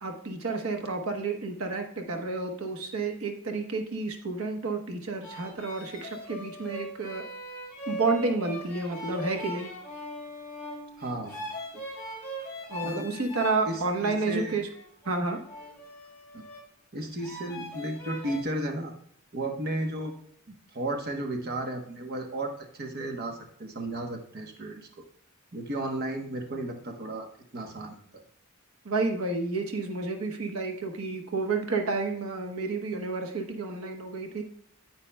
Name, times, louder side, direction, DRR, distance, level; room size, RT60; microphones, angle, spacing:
voice 1, 0.0-7.3 7.9-9.7 12.7-14.7 15.0-15.4 28.8-34.4, right 3 dB, 75° right, 4 dB, 1.1 m, -30 dB
sound 1, 5.2-13.6 14.2-16.7 17.2-18.4, equal, 10° left, 3.1 m, -40 dB
voice 2, 11.0-11.8 12.8-13.1 13.7-14.6 16.3-16.5 16.9-18.9 19.3-20.1 20.7-24.9 25.5-27.3 27.5-28.0, right 1 dB, 45° right, 3 dB, 1.0 m, -34 dB
9.7 x 8.9 x 2.2 m, 0.65 s
head